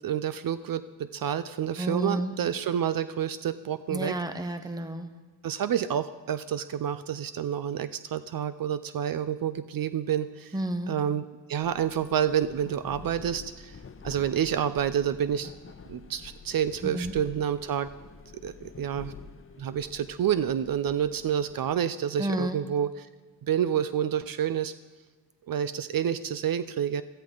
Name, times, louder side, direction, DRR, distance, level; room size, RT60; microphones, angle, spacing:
voice 1, 0.0-4.1 5.4-10.6 10.9-13.8 14.0-15.5 15.9-17.9 18.4-19.1 19.6-23.1 23.4-24.7 25.5-27.0, right 9 dB, 65° right, 14 dB, 0.5 m, -29 dB
voice 2, 1.8-2.3 3.9-5.1 10.5-10.9 16.8-17.1 22.2-22.6, right 1 dB, 10° right, 8 dB, 0.9 m, -31 dB
sound 1, 11.6-21.7, left 5 dB, 35° left, 0.9 m, -47 dB
16.0 x 14.0 x 3.9 m, 1.3 s
wide cardioid pair, 110°, 38 cm